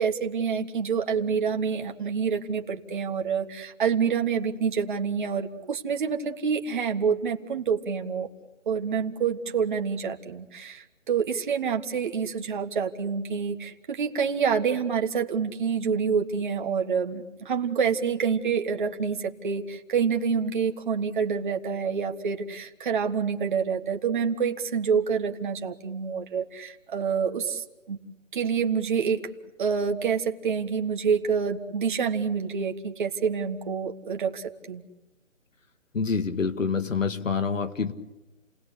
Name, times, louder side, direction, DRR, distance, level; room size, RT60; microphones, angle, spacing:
voice 1, 0.0-8.3 8.6-28.0 28.3-29.2 29.6-34.8, right 6 dB, 40° right, 4 dB, 1.6 m, -27 dB
voice 2, 35.9-37.9, left 5 dB, 75° left, 6 dB, 1.9 m, -27 dB
29.5 x 19.5 x 8.1 m, 1.0 s
hypercardioid pair, 160°, 39 cm